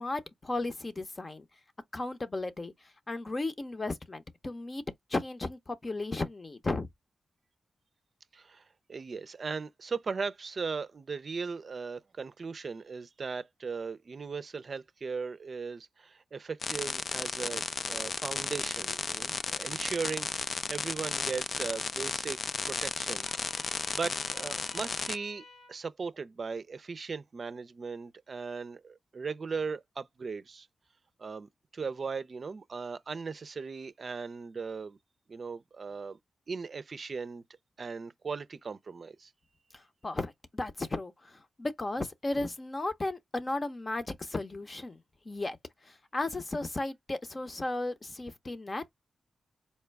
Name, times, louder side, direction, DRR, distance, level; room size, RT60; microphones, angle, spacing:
voice 1, 0.0-1.4 1.9-2.7 3.1-4.8 5.1-6.9 39.7-45.6 45.8-48.9, left 2 dB, 40° left, 0.8 m, -35 dB
voice 2, 8.3-8.6 8.9-22.4 22.7-30.7 31.2-35.0 35.3-36.2 36.5-37.4 37.8-39.3, right 5 dB, 60° right, 0.4 m, -38 dB
sound 1, 16.6-25.2, left 4 dB, 60° left, 0.3 m, -34 dB
Trumpet, 23.2-25.8, left 3 dB, 80° left, 2.1 m, -51 dB
4.3 x 2.2 x 3.4 m
cardioid pair, 45°, 0 cm